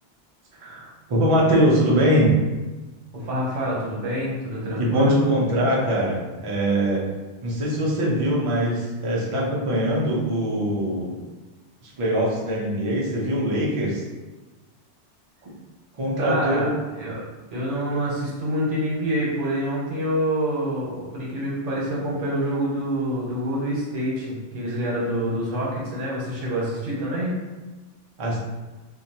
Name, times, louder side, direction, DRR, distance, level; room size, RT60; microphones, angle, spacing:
voice 1, 0.6-2.3 4.8-7.0 7.4-11.2 11.8-14.0 15.4-15.5 16.0-16.7 28.2-28.4, equal, 40° right, -4 dB, 0.5 m, -22 dB
voice 2, 3.1-5.2 16.2-16.7 17.0-17.2 17.5-27.3, equal, 80° right, -5 dB, 1.1 m, -26 dB
2.6 x 2.1 x 2.7 m, 1.2 s
omnidirectional pair, 1.2 m